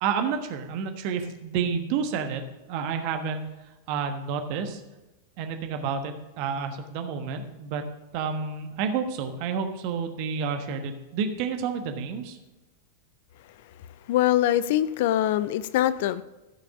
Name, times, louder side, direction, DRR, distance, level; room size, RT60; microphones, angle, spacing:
voice 1, 0.0-2.4 2.7-3.4 3.9-4.8 5.4-7.8 8.1-12.4, right 6 dB, 45° right, 6 dB, 1.3 m, -30 dB
voice 2, 14.1-16.2, left 13 dB, 50° left, 16 dB, 0.4 m, -23 dB
14.5 x 5.7 x 5.1 m, 1.0 s
figure-of-eight pair, 90°, 0 cm